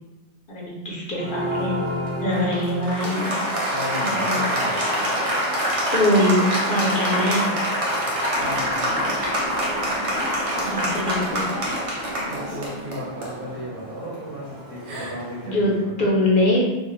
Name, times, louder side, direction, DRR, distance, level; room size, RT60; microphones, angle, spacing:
voice 1, 0.5-1.8 2.2-3.4 4.0-4.5 5.9-7.5 10.6-11.5 15.4-16.7, left 1 dB, 60° left, -4 dB, 0.6 m, -23 dB
Applause, 1.1-15.5, equal, 45° right, 0.5 m, -26 dB
Gasp, 2.9-3.4 5.0-5.3 6.1-6.5 7.0-7.3 8.0-8.2 9.2-9.3 10.5-11.2 11.6-12.0 12.4-12.8 14.7-15.3, right 2 dB, 85° right, 0.9 m, -42 dB
voice 2, 3.7-4.9 8.3-9.1 12.3-15.9, equal, 60° right, -5 dB, 0.9 m, -35 dB
sound 1, 8.3-13.8, left 2 dB, ahead, 0.6 m, -39 dB
2.3 x 2.0 x 3.0 m, 1.1 s
omnidirectional pair, 1.1 m